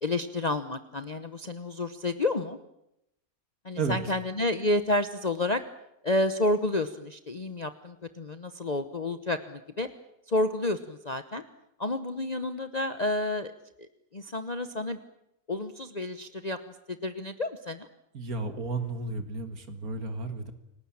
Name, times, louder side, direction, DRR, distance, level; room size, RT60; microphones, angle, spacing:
voice 1, 0.0-2.6 3.6-5.6 6.0-9.9 10.3-11.4 11.8-13.5 13.8-15.0 15.5-16.6 16.9-17.9, left 2 dB, 30° left, 9 dB, 1.0 m, -30 dB
voice 2, 18.1-20.5, right 4 dB, 80° right, 8 dB, 2.3 m, -32 dB
29.5 x 19.0 x 8.8 m, 0.82 s
omnidirectional pair, 1.5 m